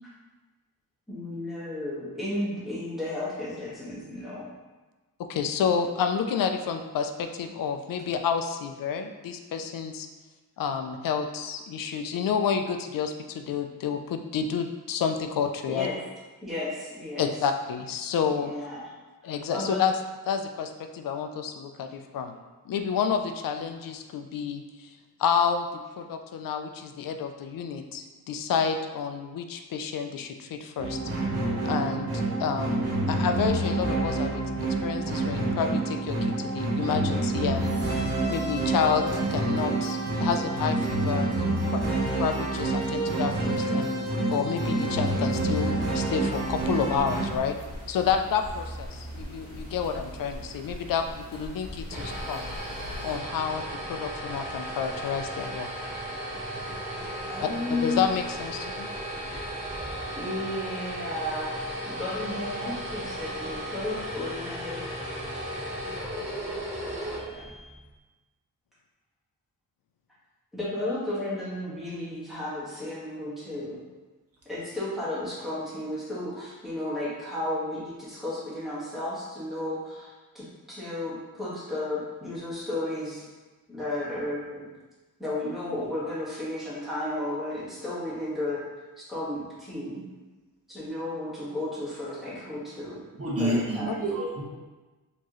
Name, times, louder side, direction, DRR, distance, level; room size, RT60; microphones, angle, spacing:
voice 1, 1.1-4.4 15.7-16.0 16.4-17.3 18.4-18.8 19.5-19.8 57.2-58.1 60.2-61.5 61.8-64.8 67.1-67.4 70.5-73.8 74.5-83.2 83.7-84.7 85.2-88.6 89.1-90.0 90.7-93.0 93.4-94.0, left 1 dB, ahead, -9 dB, 1.4 m, -33 dB
voice 2, 5.2-10.1 10.6-15.9 17.2-18.5 19.2-19.9 20.3-22.3 22.7-24.9 25.2-25.7 26.0-31.0 31.7-32.1 32.4-34.4 34.8-37.7 38.3-45.7 45.9-47.6 47.9-52.5 53.0-53.6 53.9-55.7 57.7-58.9, left 7 dB, 70° left, 6 dB, 0.5 m, -29 dB
sound 1, 30.8-47.2, right 2 dB, 85° right, 1.1 m, -27 dB
sound 2, 46.3-53.2, equal, 50° left, 0.9 m, -41 dB
sound 3, 51.6-67.8, right 1 dB, 20° right, 0.9 m, -35 dB
voice 3, 93.2-94.4, right 1 dB, 40° right, -5 dB, 1.1 m, -28 dB
4.5 x 3.0 x 3.0 m, 1.2 s
wide cardioid pair, 150°, 36 cm